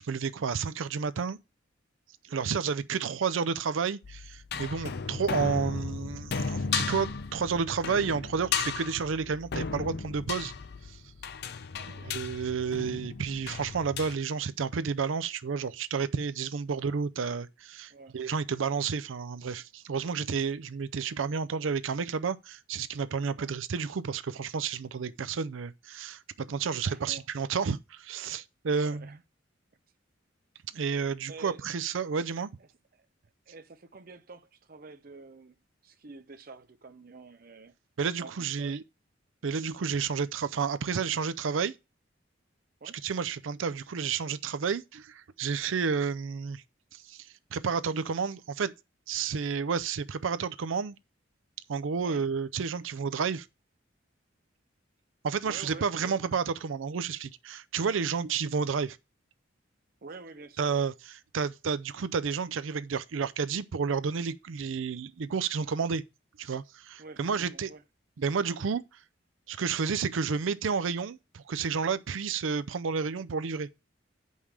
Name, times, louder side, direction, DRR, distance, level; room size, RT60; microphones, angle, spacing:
voice 1, 0.0-1.4 2.2-10.5 10.8-11.0 12.0-29.1 30.7-32.5 38.0-38.8 39.4-41.7 43.0-46.6 46.9-48.7 49.1-51.0 51.7-53.5 55.2-59.0 60.6-66.0 66.4-67.7 68.2-68.8 69.5-73.7, right 6 dB, 85° right, 0.5 m, -31 dB
sound 1, 4.0-14.1, left 5 dB, 55° left, 0.6 m, -35 dB
voice 2, 11.7-12.1 16.8-16.9 17.9-18.2 23.4-23.5 26.8-27.3 28.7-29.2 31.3-31.7 32.0-32.1 32.9-33.1 33.5-35.5 35.8-37.7 38.2-38.8 42.8-43.0 52.0-52.2 55.4-56.2 60.0-60.8 67.0-67.8, right 3 dB, 50° right, 0.7 m, -48 dB
8.6 x 5.5 x 4.8 m
head